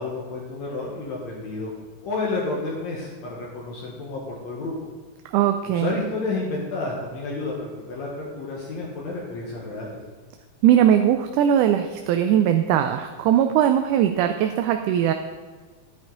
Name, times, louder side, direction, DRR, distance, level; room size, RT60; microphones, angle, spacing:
voice 1, 0.0-1.7 2.0-4.7 5.7-10.0, left 3 dB, 65° left, -3 dB, 2.5 m, -30 dB
voice 2, 5.3-6.0 10.6-15.1, right 10 dB, 85° right, 6 dB, 2.1 m, -20 dB
10.5 x 9.4 x 3.9 m, 1.4 s
omnidirectional pair, 3.5 m